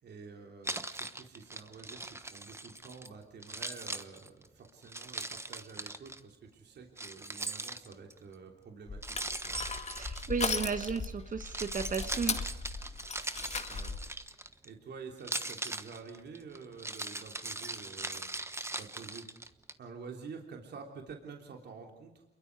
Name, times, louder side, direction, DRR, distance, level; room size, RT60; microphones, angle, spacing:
voice 1, 0.0-9.6 13.7-14.0 14.6-18.3 18.8-19.3 19.8-22.2, right 5 dB, 60° right, 2 dB, 3.3 m, -49 dB
Keys jangling, 0.6-3.1 3.4-6.2 7.0-8.2 9.0-10.9 11.3-14.7 15.2-19.7, right 2 dB, 15° right, 1.2 m, -40 dB
Crushing, 8.9-14.1, left 4 dB, 35° left, 2.1 m, -37 dB
voice 2, 9.9-12.4, right 5 dB, 40° right, 9 dB, 1.5 m, -34 dB
28.5 x 22.5 x 4.8 m, 0.95 s
cardioid pair, 90°, 20 cm